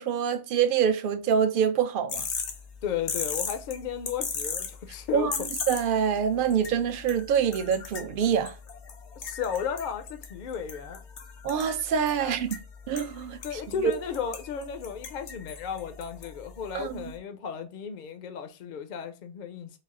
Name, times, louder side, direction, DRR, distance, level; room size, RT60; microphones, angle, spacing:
voice 1, 0.0-2.3 5.1-5.4 5.7-8.6 11.4-12.5 12.9-13.6 16.7-17.1, right 7 dB, 60° right, 0.6 m, -25 dB
sound 1, 2.1-17.2, left 6 dB, 80° left, 1.0 m, -39 dB
voice 2, 2.8-5.3 9.2-11.0 12.2-12.4 13.4-19.7, left 7 dB, 60° left, 0.6 m, -34 dB
4.0 x 2.3 x 3.6 m
omnidirectional pair, 1.1 m